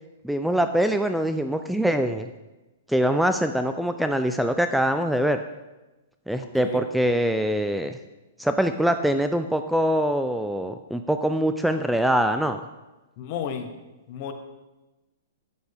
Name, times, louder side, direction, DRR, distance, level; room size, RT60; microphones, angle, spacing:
voice 1, 0.2-2.3 2.9-5.4 6.3-8.0 8.4-12.6, equal, ahead, 8 dB, 0.3 m, -23 dB
voice 2, 13.2-13.7 14.1-14.3, left 7 dB, 50° left, 7 dB, 1.1 m, -32 dB
8.6 x 8.0 x 3.5 m, 1.1 s
hypercardioid pair, 130°, 0 cm